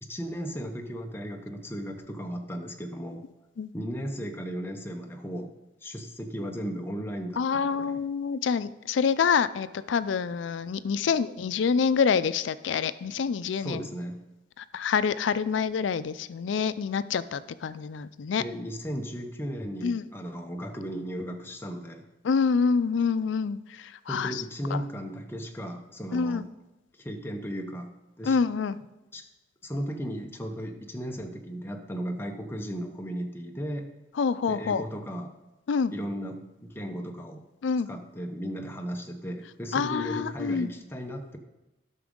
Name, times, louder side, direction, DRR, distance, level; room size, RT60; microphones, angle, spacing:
voice 1, 0.0-3.3 3.7-5.5 5.8-8.0 13.6-14.2 18.4-22.1 24.1-26.4 27.0-28.4 29.1-29.2 29.6-33.9 34.5-35.3 35.9-37.4 37.9-41.4, equal, 10° left, 3 dB, 0.8 m, -36 dB
voice 2, 7.4-13.9 14.6-18.4 19.8-20.0 22.2-24.4 24.7-24.8 26.1-26.4 28.2-28.8 34.2-34.8 35.7-35.9 37.6-37.9 39.7-40.7, left 6 dB, 75° left, 15 dB, 0.4 m, -27 dB
12.0 x 6.1 x 3.7 m, 1.0 s
head